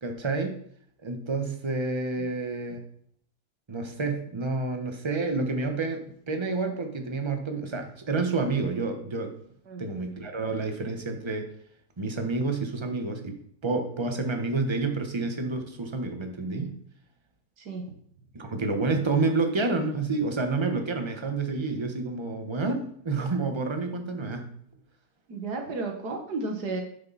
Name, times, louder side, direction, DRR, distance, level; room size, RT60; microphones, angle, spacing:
voice 1, 0.0-0.6 1.0-2.8 3.7-9.3 9.8-11.5 12.0-13.4 13.6-16.7 18.3-24.5, right 3 dB, 20° right, 5 dB, 1.0 m, -29 dB
voice 2, 25.3-26.8, right 3 dB, 80° right, 3 dB, 2.0 m, -33 dB
10.0 x 6.7 x 4.1 m, 0.65 s
omnidirectional pair, 1.7 m